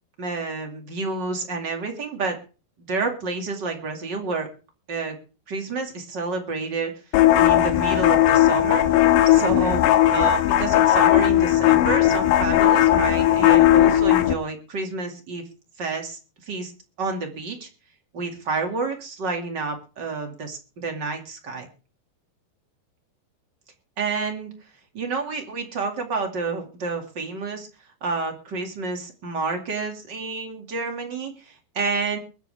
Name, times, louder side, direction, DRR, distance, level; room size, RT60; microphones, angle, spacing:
voice 1, 0.2-2.4 2.8-4.5 4.9-5.2 5.5-6.9 7.3-8.8 9.2-9.8 10.1-15.4 15.8-16.2 16.5-16.7 17.0-17.7 18.1-21.7 24.0-24.5 24.9-27.7 28.0-32.2, right 4 dB, 35° right, 4 dB, 2.1 m, -29 dB
sound 1, 7.1-14.3, left 13 dB, 85° left, 3.4 m, -17 dB
22.0 x 10.5 x 3.5 m, 0.34 s
omnidirectional pair, 5.1 m